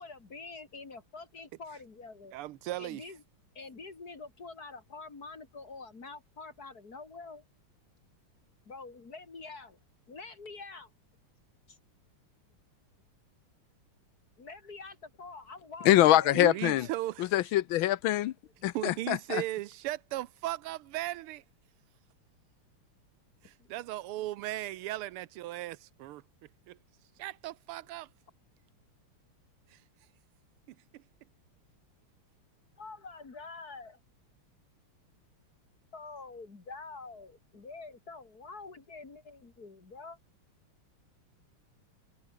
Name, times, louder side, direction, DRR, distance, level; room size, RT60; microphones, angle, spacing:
voice 1, 0.0-2.3 2.8-3.2 3.5-7.4 8.6-9.8 10.1-10.9 11.7-11.8 14.4-17.0 18.6-18.7 23.6-23.8 32.8-34.0 35.9-40.2, left 3 dB, 45° left, 3.4 m, -46 dB
voice 2, 2.3-3.1 16.3-17.3 18.7-21.4 23.4-26.2 26.7-26.8 27.2-28.1 29.7-29.8 30.9-31.0, right 15 dB, 90° right, 1.6 m, -37 dB
voice 3, 15.9-16.9 17.2-18.3 18.6-19.4, left 14 dB, 75° left, 1.4 m, -24 dB
omnidirectional pair, 2.4 m